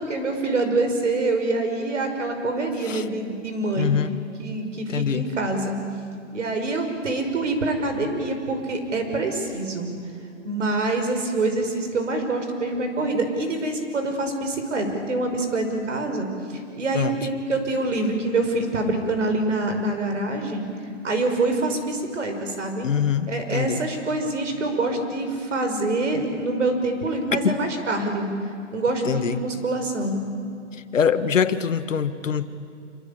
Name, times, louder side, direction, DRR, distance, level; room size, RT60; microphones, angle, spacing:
voice 1, 0.0-3.9 4.4-5.8 6.3-9.9 10.4-20.7 21.0-22.9 23.3-28.3 28.7-30.2, right 2 dB, 70° right, 6 dB, 5.8 m, -25 dB
voice 2, 3.8-4.1 4.9-5.3 16.9-17.2 22.8-23.8 27.3-27.6 29.1-29.4 30.9-32.4, left 7 dB, 80° left, 11 dB, 1.7 m, -23 dB
27.0 x 24.5 x 8.6 m, 2.5 s
hypercardioid pair, 160°, 38 cm